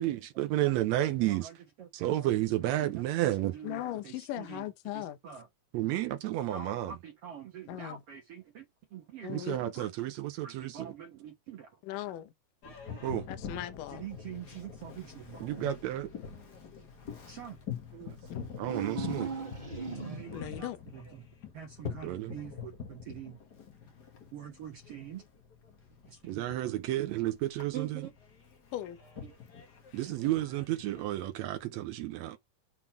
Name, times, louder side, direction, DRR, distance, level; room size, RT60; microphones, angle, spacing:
voice 1, 0.0-1.5 1.9-3.5 5.7-6.9 9.3-10.9 12.9-13.3 15.4-16.1 17.9-18.2 18.6-19.3 22.0-22.4 26.3-28.0 29.9-32.4, right 14 dB, 85° right, 1.5 m, -31 dB
voice 2, 1.2-2.3 2.6-4.7 4.9-5.5 6.5-9.9 10.4-11.7 13.9-15.6 17.3-17.6 20.0-21.2 21.5-23.4 24.3-25.2 26.1-26.7 27.7-28.1 29.2-29.3, right 9 dB, 60° right, 1.7 m, -45 dB
voice 3, 3.6-5.2 7.7-8.0 9.2-9.6 11.8-12.3 13.3-14.0 18.3-18.4 20.3-20.8 28.7-29.0 29.9-30.0, left 13 dB, 75° left, 2.4 m, -38 dB
Boat Water vehicle, 12.6-31.6, left 7 dB, 50° left, 1.3 m, -45 dB
sound 1, 18.5-20.6, right 5 dB, 20° right, 1.3 m, -38 dB
7.3 x 3.8 x 4.5 m
omnidirectional pair, 3.9 m